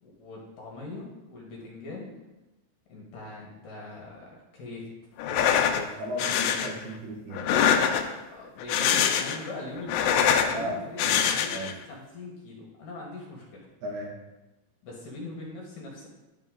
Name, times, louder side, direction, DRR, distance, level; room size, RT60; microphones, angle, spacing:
voice 1, 0.0-2.1 2.9-4.9 5.3-5.9 8.3-13.7 14.8-16.1, left 2 dB, 65° left, -3 dB, 2.5 m, -42 dB
sound 1, 5.2-5.8 6.2-6.7 7.3-8.2 8.6-9.5 9.8-10.5 11.0-11.7, left 8 dB, 85° left, 2.1 m, -24 dB
voice 2, 5.7-7.7 10.5-11.3 11.5-11.7 13.8-14.1, equal, 75° right, 0 dB, 3.1 m, -36 dB
11.0 x 3.8 x 3.8 m, 1.0 s
omnidirectional pair, 4.6 m